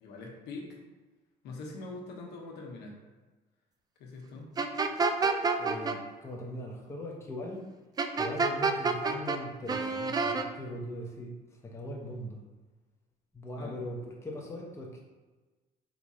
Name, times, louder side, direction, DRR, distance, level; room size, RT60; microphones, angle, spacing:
voice 1, 0.0-0.8 1.4-3.0 4.0-4.5 13.6-13.7, left 3 dB, 80° left, -1 dB, 1.0 m, -43 dB
sound 1, 4.6-6.0 8.0-9.4 9.7-10.5, right 4 dB, 25° right, 0.3 m, -28 dB
voice 2, 5.6-7.6 8.1-11.3 11.6-12.4 13.3-15.0, left 1 dB, 15° left, -2 dB, 0.8 m, -40 dB
4.9 x 2.4 x 4.1 m, 1.3 s
cardioid pair, 110°, 17 cm